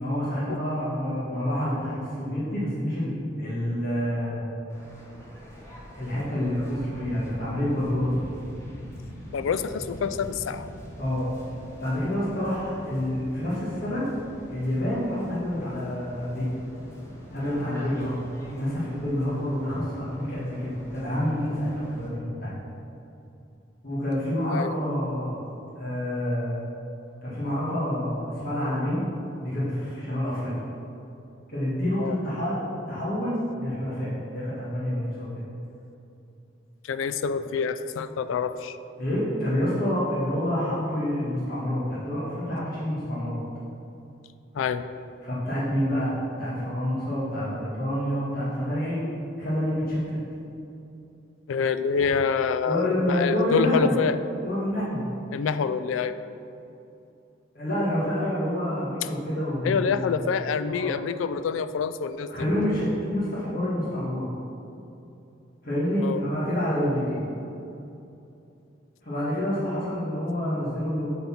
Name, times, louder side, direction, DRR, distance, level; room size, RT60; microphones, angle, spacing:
voice 1, 0.0-4.4 5.9-8.2 11.0-11.3 11.8-14.1 14.5-16.5 17.3-18.2 18.5-22.5 23.8-25.4 25.8-26.5 27.2-29.0 29.4-30.5 31.5-35.4 39.0-43.4 45.2-46.1 46.4-49.0 49.4-50.2 52.7-54.0 54.4-55.0 57.5-60.2 60.7-60.9 62.3-64.3 65.6-67.2 69.0-71.1, equal, 50° left, -8 dB, 1.7 m, -28 dB
Waves surf, 4.7-22.1, equal, 15° left, 1.2 m, -43 dB
voice 2, 9.3-10.7 24.5-24.8 32.0-32.2 36.8-38.8 44.5-44.9 51.5-54.2 55.3-56.2 59.6-62.3 66.0-66.2, left 6 dB, 90° left, 12 dB, 0.3 m, -26 dB
7.7 x 4.2 x 5.8 m, 2.8 s
head